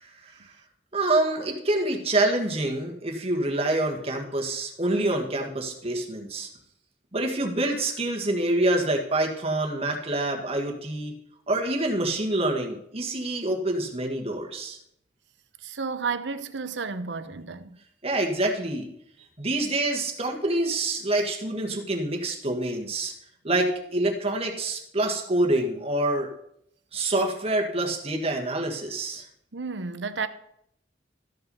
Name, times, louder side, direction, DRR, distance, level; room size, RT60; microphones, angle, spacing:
voice 1, 0.9-6.5 7.1-11.1 11.5-14.8 18.0-18.9 19.4-23.1 23.4-26.3 26.9-29.2, right 2 dB, 35° right, 1.6 m, -26 dB
voice 2, 15.6-17.8 29.5-30.3, right 5 dB, 80° right, 0.8 m, -32 dB
13.5 x 5.7 x 5.5 m
head